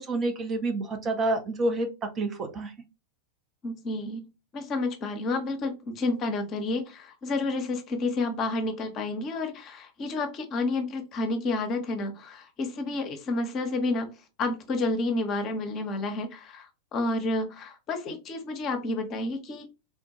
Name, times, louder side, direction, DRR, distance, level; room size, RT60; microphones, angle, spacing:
voice 1, 0.0-2.7, right 2 dB, 25° right, 5 dB, 0.6 m, -28 dB
voice 2, 3.6-4.3 4.5-19.6, left 2 dB, 35° left, 6 dB, 0.7 m, -30 dB
3.3 x 2.2 x 2.7 m, 0.28 s
figure-of-eight pair, 90°, 0 cm